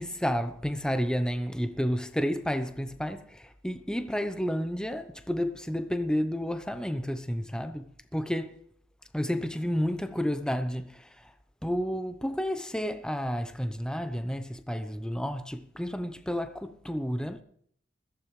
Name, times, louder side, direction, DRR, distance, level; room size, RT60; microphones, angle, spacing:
voice 1, 0.0-7.9 8.1-8.5 9.1-11.1 11.6-17.4, equal, 5° left, 0.8 m, -31 dB
20.5 x 15.5 x 3.3 m
head